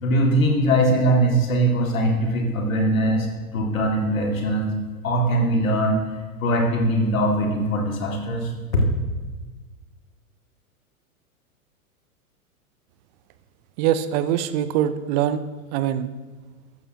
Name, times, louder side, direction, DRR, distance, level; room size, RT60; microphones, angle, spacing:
voice 1, 0.0-3.3 3.5-4.7 5.0-6.0 6.4-8.8, right 1 dB, 65° left, 1 dB, 2.4 m, -21 dB
voice 2, 13.8-15.4 15.7-16.1, right 10 dB, 30° right, 13 dB, 0.6 m, -23 dB
14.5 x 13.5 x 2.9 m, 1.3 s
figure-of-eight pair, 100°, 44 cm